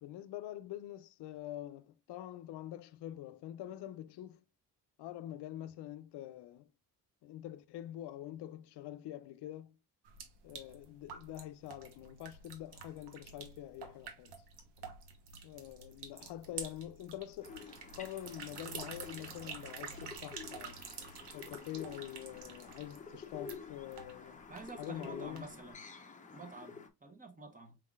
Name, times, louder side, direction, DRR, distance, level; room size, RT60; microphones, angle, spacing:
voice 1, 0.0-4.4 5.0-6.7 7.2-9.8 10.4-14.4 15.4-17.7 18.0-20.8 21.3-24.5 24.8-25.5, left 13 dB, 75° left, 0.5 m, -45 dB
sound 1, 10.0-25.7, right 6 dB, 85° right, 1.1 m, -49 dB
sound 2, 17.4-26.9, left 5 dB, 20° left, 0.7 m, -50 dB
voice 2, 24.5-25.8 26.3-27.8, right 3 dB, 20° right, 1.0 m, -49 dB
4.8 x 3.6 x 2.4 m
cardioid pair, 115°, 40 cm